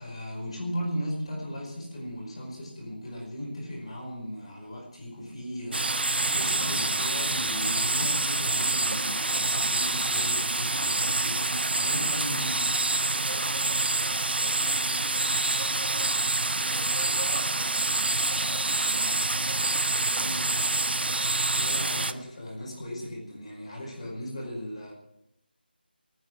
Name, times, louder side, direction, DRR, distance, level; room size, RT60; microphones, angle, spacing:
voice 1, 0.0-12.6 20.0-20.5 21.5-24.9, equal, 35° left, -2 dB, 5.2 m, -37 dB
sound 1, 5.7-22.1, right 2 dB, 75° right, 0.8 m, -27 dB
voice 2, 13.0-16.1 16.7-18.0 18.3-20.4, right 1 dB, 60° right, 2 dB, 5.8 m, -44 dB
19.0 x 9.3 x 6.3 m, 0.83 s
figure-of-eight pair, 170°, 6 cm